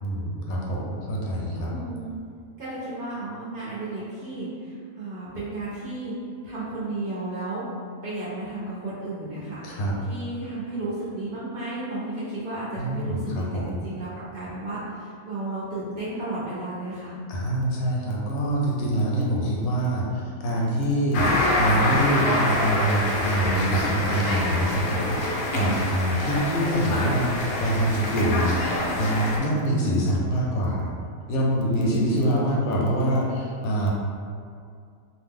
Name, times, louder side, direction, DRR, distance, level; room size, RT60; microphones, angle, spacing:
voice 1, 0.0-1.8 9.6-10.0 12.8-13.8 17.3-30.9 31.3-33.9, right 1 dB, 80° left, -3 dB, 1.1 m, -25 dB
voice 2, 1.6-2.2 2.6-6.1 6.4-7.6 8.0-9.6 10.1-17.1 18.8-19.3 25.4-25.8 31.6-32.0, right 2 dB, 50° right, -10 dB, 0.7 m, -33 dB
sound 1, 21.1-29.4, left 1 dB, 65° left, 0.6 m, -26 dB
2.7 x 2.1 x 3.5 m, 2.3 s
omnidirectional pair, 1.5 m